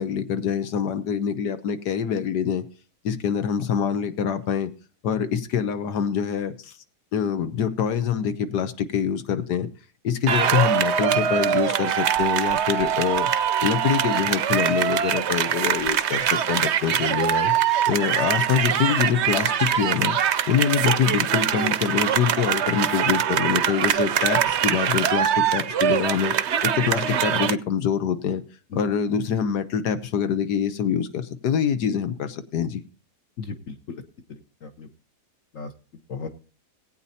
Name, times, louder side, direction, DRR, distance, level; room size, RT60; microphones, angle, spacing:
voice 1, 0.0-2.6 3.0-4.7 5.0-6.7 7.1-9.7 10.0-13.3 13.6-17.5 17.9-20.2 20.5-26.3 26.6-28.4 28.7-32.8, left 8 dB, 90° left, 10 dB, 1.5 m, -25 dB
sound 1, 10.3-27.5, right 9 dB, 60° right, 0.8 m, -23 dB
voice 2, 33.4-34.0 34.3-34.9 35.5-35.7 36.1-36.3, left 4 dB, 55° left, 5 dB, 1.2 m, -36 dB
19.5 x 8.9 x 2.8 m, 0.37 s
omnidirectional pair, 1.7 m